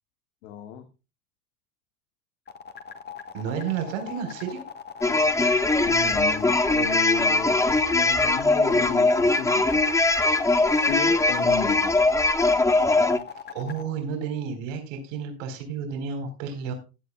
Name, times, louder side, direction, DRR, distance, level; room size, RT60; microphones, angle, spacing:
voice 1, 0.4-0.9 5.8-9.9 10.7-12.0, left 9 dB, 85° left, 1.8 m, -34 dB
sound 1, 2.5-13.8, left 7 dB, 25° left, 1.6 m, -39 dB
voice 2, 3.3-4.6 13.5-16.7, right 7 dB, 80° right, 4.2 m, -31 dB
sound 2, 5.0-13.2, left 2 dB, 10° left, 1.0 m, -21 dB
16.0 x 10.5 x 2.3 m
supercardioid pair, 135°, 38 cm